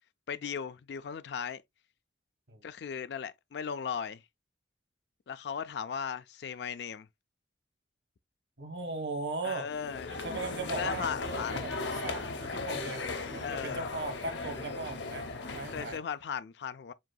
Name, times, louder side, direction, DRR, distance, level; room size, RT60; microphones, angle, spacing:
voice 1, 0.3-1.6 2.6-4.2 5.3-7.1 9.4-10.2 10.7-11.5 13.4-13.9 15.7-16.9, left 7 dB, 70° left, 0.4 m, -37 dB
voice 2, 8.6-9.7 10.1-11.7 12.0-13.0 13.3-15.3 15.5-16.0, right 3 dB, 80° right, 1.4 m, -38 dB
sound 1, 9.7-16.0, left 3 dB, 85° left, 0.9 m, -37 dB
7.4 x 2.6 x 2.3 m
head